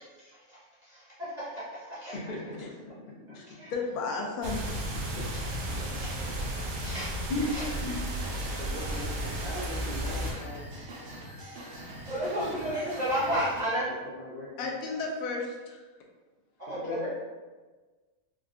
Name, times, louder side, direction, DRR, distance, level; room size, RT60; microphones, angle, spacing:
voice 1, 2.1-2.7 5.2-5.3 7.3-8.0 8.5-10.7 12.1-12.7 14.1-14.7 16.7-17.1, left 2 dB, 60° left, -6 dB, 0.5 m, -37 dB
voice 2, 3.3-4.6 14.6-15.8, left 4 dB, 90° left, 0 dB, 1.1 m, -33 dB
sound 1, 4.4-10.3, right 1 dB, 65° right, 0.9 m, -34 dB
voice 3, 6.0-6.5 6.8-7.1 7.5-7.6 8.4-8.6 12.0-13.9 16.6-17.1, right 1 dB, 40° right, -9 dB, 0.6 m, -31 dB
sound 2, 7.4-13.6, right 1 dB, 85° right, 1.2 m, -43 dB
3.6 x 2.2 x 2.4 m, 1.3 s
omnidirectional pair, 1.5 m